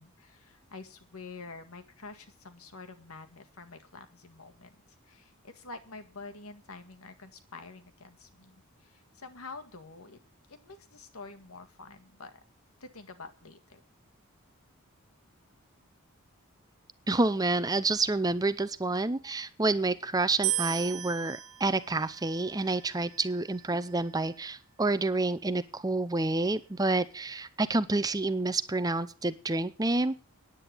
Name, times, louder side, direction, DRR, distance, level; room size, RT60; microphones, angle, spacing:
voice 1, 0.0-4.8 5.1-10.2 10.5-12.4 12.8-13.8, left 3 dB, 80° left, 7 dB, 1.9 m, -47 dB
voice 2, 17.1-30.1, right 2 dB, 15° right, 14 dB, 0.6 m, -28 dB
sound 1, 20.4-23.7, right 13 dB, 70° right, 1.6 m, -36 dB
9.9 x 9.0 x 9.0 m, 0.38 s
head